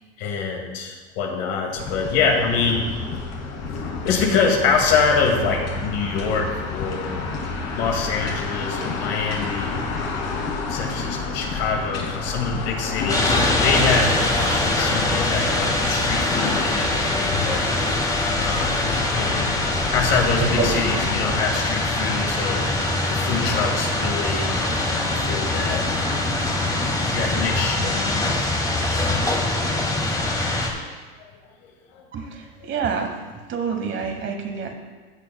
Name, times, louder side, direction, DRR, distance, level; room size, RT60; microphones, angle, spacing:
voice 1, 0.2-3.0 4.0-7.3 7.7-9.9 10.2-13.4 13.6-17.6 18.4-18.8 19.2-19.5 19.9-22.7 23.1-25.8 27.1-28.4 29.2-29.3 31.6-32.0 32.6-32.7, left 5 dB, 70° left, 1 dB, 2.2 m, -25 dB
sound 1, 1.8-21.4, left 4 dB, 50° left, 2.5 m, -29 dB
sound 2, 13.1-30.7, left 2 dB, 10° left, 1.4 m, -23 dB
voice 2, 20.4-20.8 21.2-21.4 32.1-33.2 33.5-34.7, right 6 dB, 35° right, 5 dB, 1.3 m, -27 dB
16.0 x 7.5 x 2.3 m, 1.4 s
supercardioid pair, 110°, 32 cm